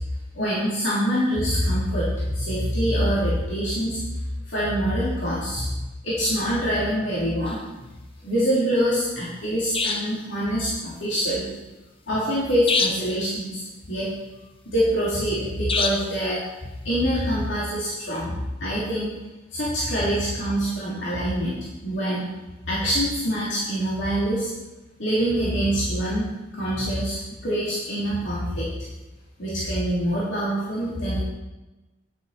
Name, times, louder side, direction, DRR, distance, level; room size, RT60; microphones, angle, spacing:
voice 1, 0.3-4.0 4.5-7.6 8.2-11.5 12.1-13.6 13.9-14.1 14.7-16.4 16.8-19.1 19.5-22.3 22.7-24.5 25.0-26.3 26.5-27.2 27.4-28.7 29.4-31.2, equal, 90° left, -9 dB, 3.4 m, -25 dB
sound 1, 7.5-7.6 9.7-10.2 12.7-13.2 15.7-16.2, left 4 dB, 30° left, 0.8 m, -25 dB
11.0 x 7.2 x 5.8 m, 1.1 s
head